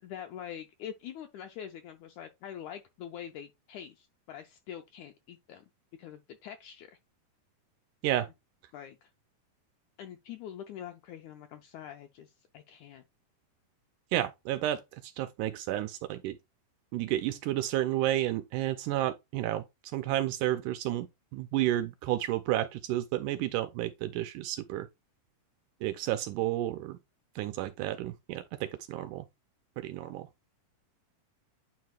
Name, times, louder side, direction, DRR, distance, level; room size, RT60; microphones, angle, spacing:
voice 1, 0.0-5.6 6.0-7.0 8.7-9.1 10.0-13.0, left 9 dB, 85° left, 1.7 m, -44 dB
voice 2, 14.1-14.8 15.2-16.4 16.9-19.6 19.9-21.1 21.3-24.9 25.8-27.0 27.4-29.3 29.8-30.3, right 14 dB, 80° right, 1.9 m, -31 dB
9.3 x 4.6 x 2.3 m
omnidirectional pair, 4.0 m